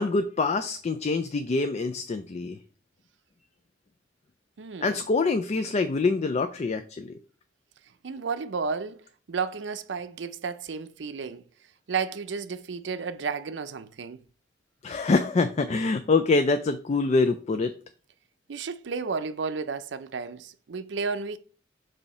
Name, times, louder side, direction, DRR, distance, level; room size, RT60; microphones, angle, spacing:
voice 1, 0.0-2.6 4.8-7.1 14.8-17.7, left 3 dB, 35° left, 0.4 m, -25 dB
voice 2, 4.6-5.0 8.0-9.0 9.3-11.4 11.9-14.2 18.5-21.4, right 5 dB, 70° right, 0.5 m, -32 dB
7.0 x 2.8 x 5.4 m
head